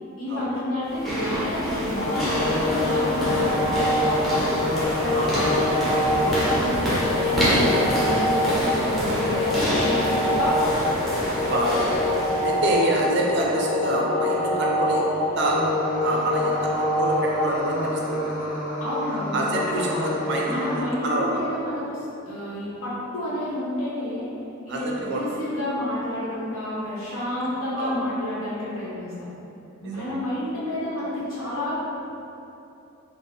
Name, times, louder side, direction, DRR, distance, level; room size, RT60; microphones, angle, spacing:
voice 1, 0.2-4.5 5.0-6.9 7.2-10.7 18.8-20.0 20.4-24.3 24.6-29.3 29.8-31.8, left 1 dB, 65° left, -9 dB, 1.1 m, -29 dB
sound 1, 0.8-12.8, equal, ahead, 0.7 m, -27 dB
sound 2, 1.9-20.8, left 1 dB, 40° left, 0.6 m, -25 dB
voice 2, 11.4-12.0 12.4-15.6 16.0-18.6 19.1-21.4 24.7-25.4 27.7-27.9 29.8-30.0, right 1 dB, 50° right, -2 dB, 0.5 m, -27 dB
3.7 x 2.1 x 3.8 m, 2.9 s
head